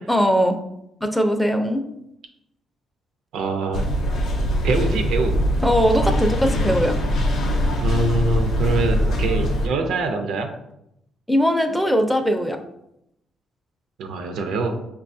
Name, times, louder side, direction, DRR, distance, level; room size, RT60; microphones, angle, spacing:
voice 1, 0.1-0.6 1.0-1.8 5.6-6.9 11.3-12.6, equal, ahead, 5 dB, 0.4 m, -20 dB
voice 2, 3.3-3.9 4.6-5.3 7.8-10.5 14.0-14.8, right 3 dB, 85° right, 5 dB, 0.5 m, -24 dB
sound 1, 3.7-9.7, equal, 75° left, 0.6 m, -22 dB
5.3 x 2.2 x 2.6 m, 0.82 s
cardioid pair, 90°, 0 cm